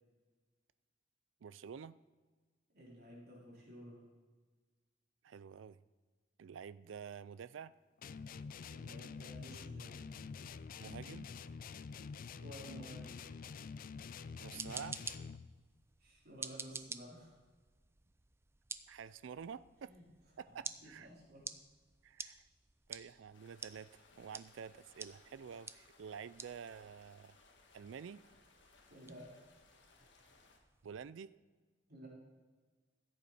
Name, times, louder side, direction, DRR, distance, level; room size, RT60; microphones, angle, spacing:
voice 1, 1.4-2.0 5.2-5.8 6.4-7.7 10.8-11.3 14.4-15.0 18.9-19.9 20.4-21.1 22.0-22.4 22.9-27.4 27.7-28.2 30.8-31.3, right 7 dB, 80° right, 16 dB, 0.4 m, -49 dB
voice 2, 2.7-4.0 8.7-10.1 12.4-13.2 16.0-17.3 19.8-20.0 20.8-21.4 28.9-29.3 31.9-32.1, equal, 55° right, -5 dB, 4.2 m, -53 dB
sound 1, 8.0-15.5, left 5 dB, 50° left, 0.4 m, -47 dB
sound 2, 14.3-31.1, right 4 dB, 15° right, 0.4 m, -51 dB
sound 3, 23.3-30.6, left 3 dB, 70° left, 1.7 m, -66 dB
15.0 x 8.5 x 4.2 m, 1.4 s
head